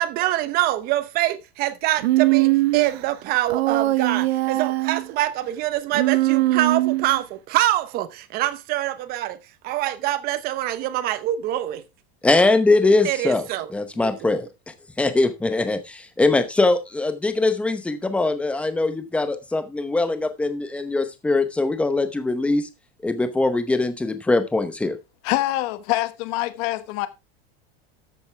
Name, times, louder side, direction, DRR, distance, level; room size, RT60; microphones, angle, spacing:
voice 1, 0.0-9.4 9.6-11.8 13.0-13.7 14.0-14.3, right 14 dB, 30° right, 0.9 m, -25 dB
Human voice, 2.0-3.0 3.5-5.1 5.9-7.2, right 17 dB, 90° right, 1.1 m, -21 dB
voice 2, 12.2-13.5 13.7-14.5 15.0-22.7 23.0-25.0, left 2 dB, 5° left, 0.8 m, -21 dB
voice 3, 25.2-27.1, left 16 dB, 40° left, 1.3 m, -25 dB
13.5 x 7.9 x 3.4 m
supercardioid pair, 180°, 31 cm